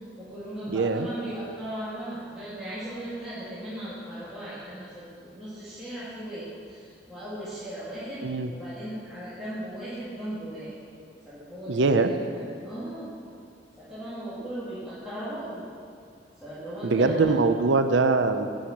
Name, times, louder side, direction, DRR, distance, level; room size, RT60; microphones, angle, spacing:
voice 1, 0.2-8.2 8.5-10.8 11.2-13.1 13.8-15.7 16.4-17.3, right 1 dB, 5° right, -13 dB, 2.3 m, -37 dB
voice 2, 0.7-1.1 8.2-8.5 11.7-12.1 16.8-18.5, right 3 dB, 80° right, 8 dB, 0.6 m, -22 dB
8.6 x 7.8 x 7.2 m, 2.3 s
head